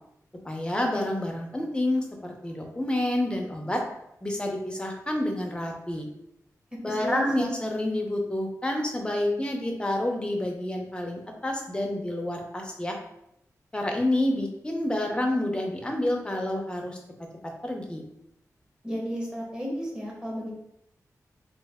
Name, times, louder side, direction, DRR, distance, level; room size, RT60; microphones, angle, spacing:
voice 1, 0.4-3.8 4.2-6.1 6.8-13.0 13.7-17.0 17.6-18.0, left 1 dB, 15° left, 1 dB, 0.6 m, -28 dB
voice 2, 6.8-7.5 18.8-20.5, equal, 15° right, -4 dB, 1.1 m, -32 dB
3.2 x 2.4 x 3.5 m, 0.80 s
wide cardioid pair, 115°, 6 cm